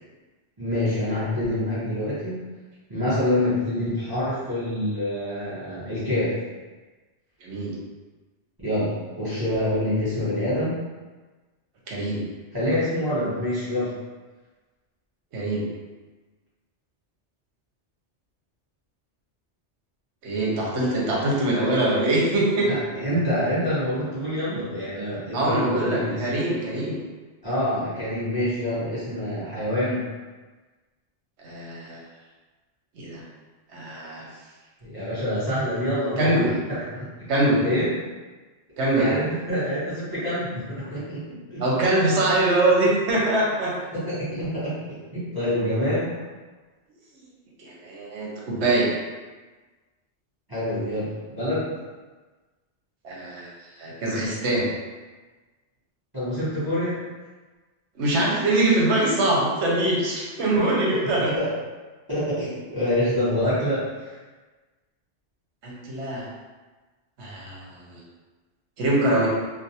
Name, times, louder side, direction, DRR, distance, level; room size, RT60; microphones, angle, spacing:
voice 1, 0.6-2.4 2.9-6.3 8.6-10.8 12.5-13.9 22.6-26.3 27.4-30.0 34.8-36.4 36.7-37.1 37.6-37.9 38.9-41.2 41.5-41.6 43.9-46.2 50.5-51.7 56.1-57.0 60.5-60.7 61.2-61.5 62.1-64.1, left 1 dB, 20° right, -12 dB, 0.8 m, -26 dB
voice 2, 7.4-7.7 11.9-12.2 15.3-15.6 20.2-22.7 25.3-27.0 31.4-32.0 33.0-33.2 33.7-34.3 36.2-36.5 37.3-37.7 38.8-39.2 41.6-43.7 47.6-48.9 53.0-53.5 53.8-54.7 58.0-61.3 65.6-66.3 67.2-68.0 68.8-69.3, right 1 dB, 80° right, -4 dB, 1.0 m, -23 dB
2.5 x 2.1 x 2.7 m, 1.3 s
omnidirectional pair, 1.2 m